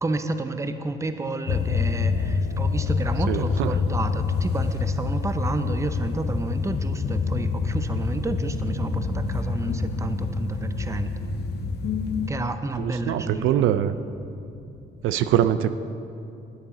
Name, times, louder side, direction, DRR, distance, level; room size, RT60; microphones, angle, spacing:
voice 1, 0.0-11.1 12.3-13.7, right 2 dB, 15° right, 9 dB, 0.6 m, -30 dB
sound 1, 1.5-12.3, left 4 dB, 55° left, 0.7 m, -26 dB
voice 2, 3.3-3.7 12.8-13.9 15.0-15.8, right 11 dB, 80° right, 12 dB, 0.4 m, -23 dB
sound 2, 5.5-15.1, left 3 dB, 40° left, 1.2 m, -47 dB
11.0 x 9.1 x 4.1 m, 2.6 s
cardioid pair, 90°, 20 cm